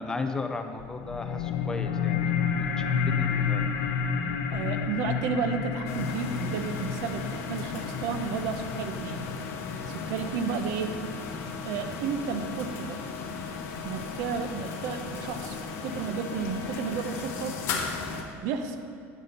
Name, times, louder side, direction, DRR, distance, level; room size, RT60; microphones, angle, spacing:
voice 1, 0.0-2.7 3.2-3.6, left 3 dB, 10° left, 6 dB, 0.3 m, -35 dB
sound 1, 0.8-11.8, left 6 dB, 80° left, 0.6 m, -31 dB
voice 2, 4.5-9.3 9.9-11.0 11.6-13.0 13.8-15.6 15.8-17.6 18.4-18.8, right 6 dB, 60° right, 7 dB, 0.7 m, -32 dB
sound 2, 5.9-18.2, left 4 dB, 45° left, 0.9 m, -36 dB
9.2 x 4.1 x 6.5 m, 2.4 s
cardioid pair, 175°, 6 cm